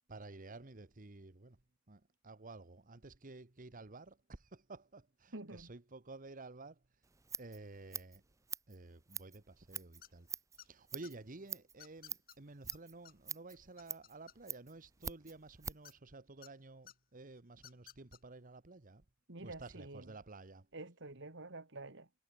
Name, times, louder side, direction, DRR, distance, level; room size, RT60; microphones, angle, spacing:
voice 1, 0.1-1.6 1.9-7.1 7.4-8.2 8.7-10.3 10.5-19.0 19.4-20.7, right 2 dB, 45° right, 1.3 m, -52 dB
voice 2, 5.3-5.7 19.3-20.1 20.7-22.2, right 2 dB, 65° right, 2.7 m, -48 dB
Scissors, 7.0-16.0, right 6 dB, 15° right, 0.8 m, -47 dB
sound 1, 10.0-10.3 10.6-11.1 11.8-12.4 12.7-12.8 13.0-13.1 13.5-14.7 15.8-16.5 16.9-17.0 17.5-18.2, left 10 dB, 45° left, 2.0 m, -56 dB
head